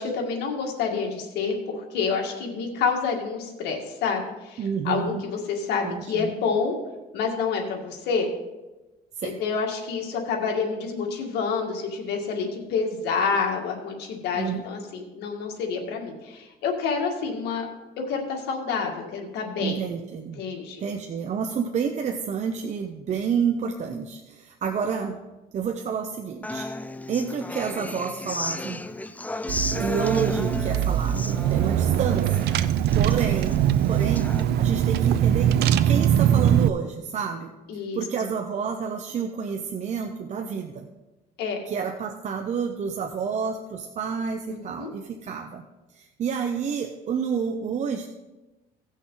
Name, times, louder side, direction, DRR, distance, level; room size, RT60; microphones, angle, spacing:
voice 1, 0.0-6.8 7.1-8.3 9.2-17.7 18.0-19.8 20.4-20.8 37.7-38.0 41.4-41.6 44.5-44.9, left 5 dB, 80° left, 1 dB, 2.0 m, -28 dB
voice 2, 4.6-5.2 5.8-6.3 9.2-9.4 14.3-14.6 19.6-20.4 20.8-25.2 25.5-26.7 27.1-28.8 29.8-32.5 32.9-35.5 35.8-37.5 37.9-40.9 41.7-45.6 45.9-48.1, right 6 dB, 45° right, 4 dB, 0.8 m, -29 dB
Human voice / Acoustic guitar, 26.4-34.4, left 2 dB, 10° left, 0.4 m, -34 dB
Car / Engine, 29.5-36.7, right 10 dB, 75° right, 0.5 m, -22 dB
17.0 x 6.3 x 3.9 m, 1.1 s
cardioid pair, 110°, 17 cm